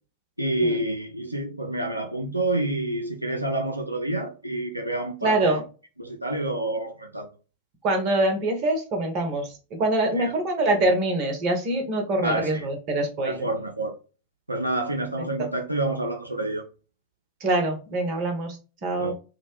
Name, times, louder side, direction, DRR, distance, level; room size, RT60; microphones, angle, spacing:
voice 1, 0.4-5.6 6.0-7.3 10.2-10.3 12.2-12.7 13.2-14.0 14.5-16.6 19.0-19.1, right 1 dB, 85° right, 0.3 m, -28 dB
voice 2, 5.2-5.6 7.8-13.5 15.4-15.5 17.4-18.6 18.8-19.1, right 2 dB, 40° right, 0.9 m, -24 dB
2.8 x 2.1 x 2.9 m
figure-of-eight pair, 90°, 0 cm